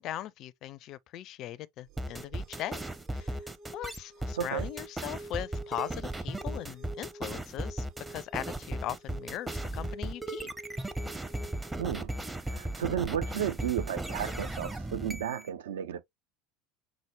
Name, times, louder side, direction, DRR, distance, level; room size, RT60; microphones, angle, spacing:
voice 1, 0.0-2.8 3.1-3.4 3.7-10.5, left 13 dB, 45° left, 0.4 m, -39 dB
sound 1, 1.9-11.9, right 2 dB, 45° right, 3.4 m, -49 dB
sound 2, 2.0-15.5, right 1 dB, 10° right, 0.6 m, -36 dB
voice 2, 4.3-4.7 11.8-12.1 12.5-16.0, right 9 dB, 65° right, 0.5 m, -33 dB
5.8 x 2.0 x 3.2 m
figure-of-eight pair, 70°, 0 cm